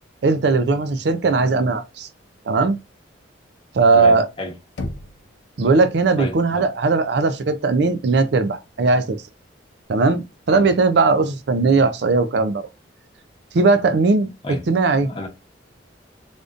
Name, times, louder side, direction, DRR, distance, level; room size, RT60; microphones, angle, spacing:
voice 1, 0.2-2.1 2.5-2.8 3.7-4.3 5.6-9.2 9.9-12.6 13.5-14.3 14.7-15.1, right 3 dB, 60° right, 0.4 m, -18 dB
voice 2, 3.9-4.5 6.2-6.6 10.5-10.7 14.4-14.6 15.0-15.3, left 1 dB, 25° left, 0.9 m, -31 dB
Knock, 4.8-5.7, left 2 dB, 80° left, 0.5 m, -33 dB
3.5 x 2.5 x 2.5 m
head